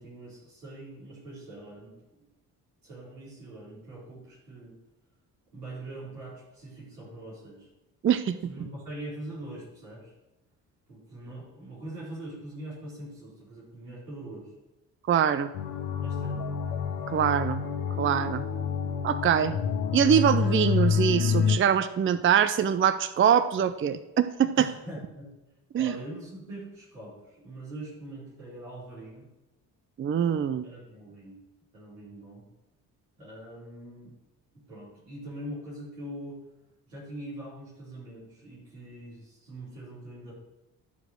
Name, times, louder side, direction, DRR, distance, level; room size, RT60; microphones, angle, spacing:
voice 1, 0.0-1.9 2.8-4.7 5.5-7.7 8.4-10.1 10.9-14.5 16.0-16.4 24.5-25.3 25.7-29.3 30.6-31.4 31.7-32.4 33.2-34.2 34.5-36.4 36.9-40.3, right 1 dB, 80° right, -7 dB, 4.2 m, -42 dB
voice 2, 8.0-8.4 15.1-15.5 17.1-17.6 18.0-18.4 19.0-19.6 19.9-24.6 25.7-25.9 30.0-30.6, right 8 dB, 25° right, 13 dB, 0.6 m, -23 dB
sound 1, 15.5-21.6, left 6 dB, 80° left, 1.0 m, -28 dB
12.5 x 4.8 x 6.3 m, 0.96 s
figure-of-eight pair, 40°, 47 cm